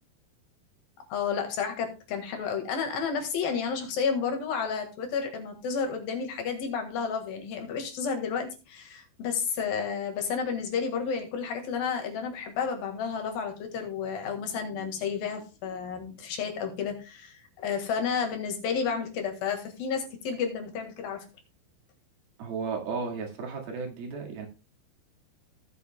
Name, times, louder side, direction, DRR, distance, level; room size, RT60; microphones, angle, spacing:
voice 1, 1.1-21.2, left 6 dB, 70° left, 4 dB, 3.3 m, -31 dB
voice 2, 22.4-24.5, right 5 dB, 75° right, 1 dB, 3.8 m, -34 dB
18.0 x 7.1 x 2.2 m, 0.31 s
omnidirectional pair, 4.4 m